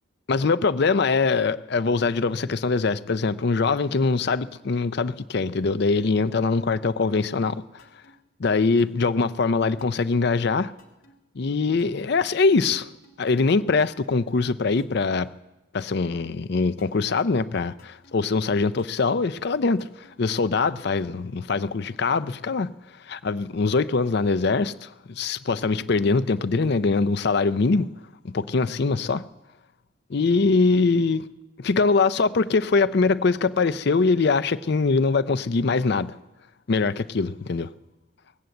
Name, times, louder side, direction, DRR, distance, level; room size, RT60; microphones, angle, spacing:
voice 1, 0.3-7.6 8.4-10.7 11.4-12.9 13.2-15.3 15.7-22.7 23.1-27.9 28.2-29.2 30.1-31.3 31.6-36.1 36.7-37.7, left 4 dB, 50° left, 0.5 m, -23 dB
sound 1, 7.8-8.1 8.8-9.1 9.8-10.1 10.8-11.1 11.8-12.1 12.8-13.1 13.8-14.1 14.8-15.1 15.8-16.1 16.8-17.1 17.8-18.1 18.8-19.1 19.8-20.1 20.8-21.1, left 2 dB, 80° left, 2.2 m, -55 dB
18.5 x 8.1 x 7.7 m
head